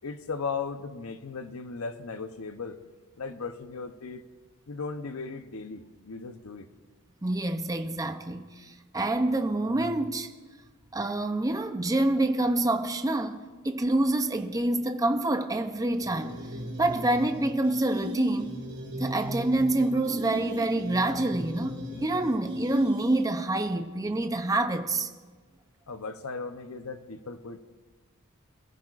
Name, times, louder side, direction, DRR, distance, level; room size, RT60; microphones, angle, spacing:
voice 1, 0.0-2.8 3.2-4.2 4.7-6.7 25.9-27.6, left 4 dB, 70° left, 0.8 m, -37 dB
voice 2, 7.2-10.3 10.9-16.3 16.8-18.5 19.0-25.1, right 2 dB, 15° right, 0.6 m, -27 dB
sound 1, 16.0-23.5, right 1 dB, 60° right, 4.6 m, -36 dB
22.5 x 14.5 x 2.5 m
head